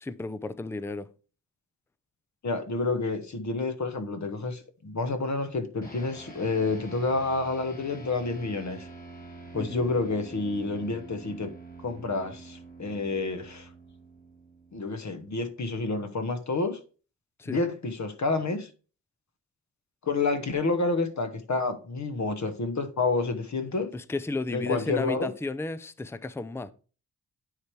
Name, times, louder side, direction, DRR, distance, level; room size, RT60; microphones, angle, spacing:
voice 1, 0.0-1.1 9.5-9.8 17.4-17.6 23.9-26.7, left 3 dB, 5° left, 0.4 m, -33 dB
voice 2, 2.4-8.9 9.5-11.5 11.8-13.7 14.7-16.8 17.4-18.7 20.0-23.9 24.5-25.3, left 3 dB, 50° left, 1.2 m, -29 dB
sound 1, 5.8-15.4, right 3 dB, 25° left, 2.4 m, -46 dB
9.5 x 3.3 x 4.5 m
cardioid pair, 75°, 36 cm